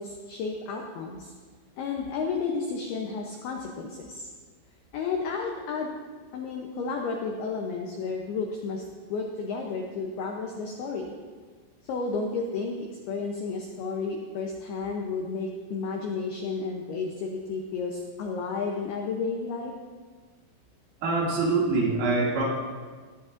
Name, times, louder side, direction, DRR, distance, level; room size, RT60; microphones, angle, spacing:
voice 1, 0.0-1.3 1.8-4.3 4.9-5.9 6.3-11.1 11.9-19.7, left 4 dB, 85° left, 1 dB, 2.2 m, -32 dB
voice 2, 21.0-22.4, right 3 dB, 85° right, -4 dB, 5.0 m, -24 dB
19.5 x 9.8 x 2.6 m, 1.5 s
omnidirectional pair, 5.7 m